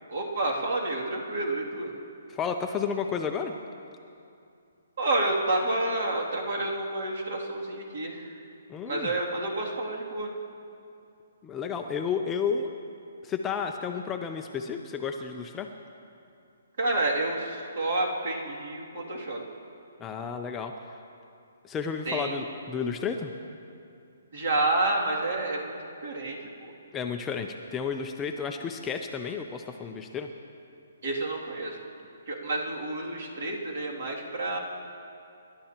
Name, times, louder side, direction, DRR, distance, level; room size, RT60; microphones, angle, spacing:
voice 1, 0.1-1.9 5.0-8.4 8.9-10.3 16.8-19.4 22.1-22.3 24.3-25.7 26.0-26.5 31.0-31.8 32.3-34.6, right 2 dB, 55° right, -2 dB, 2.5 m, -29 dB
voice 2, 2.3-3.5 8.7-9.1 11.4-12.7 13.2-15.7 20.0-20.9 21.6-23.3 26.9-30.3, left 6 dB, 10° left, 4 dB, 0.4 m, -32 dB
27.5 x 12.0 x 2.9 m, 2.6 s
hypercardioid pair, 175°, 0 cm